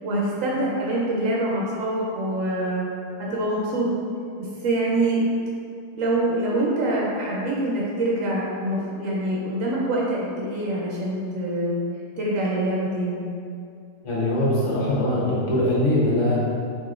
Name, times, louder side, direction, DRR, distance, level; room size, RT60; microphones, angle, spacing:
voice 1, 0.0-2.8 3.2-3.9 4.4-5.3 6.0-11.8 12.2-13.2, right 1 dB, 80° right, -4 dB, 1.0 m, -25 dB
voice 2, 14.0-16.4, left 1 dB, 70° left, -6 dB, 1.2 m, -22 dB
4.7 x 2.7 x 2.4 m, 2.4 s
omnidirectional pair, 1.4 m